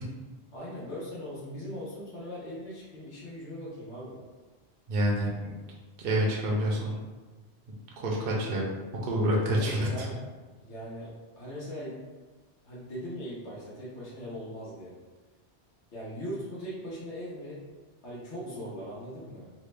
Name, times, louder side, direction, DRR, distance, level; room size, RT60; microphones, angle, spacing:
voice 1, 0.5-4.2 9.5-10.1 10.6-11.9 12.6-14.9 15.9-17.6 18.0-19.5, equal, 85° left, -8 dB, 1.1 m, -39 dB
voice 2, 4.9-5.3 6.0-6.9 8.0-8.7 9.0-10.1, equal, 60° right, -3 dB, 0.8 m, -27 dB
3.2 x 2.0 x 3.1 m, 1.3 s
omnidirectional pair, 1.1 m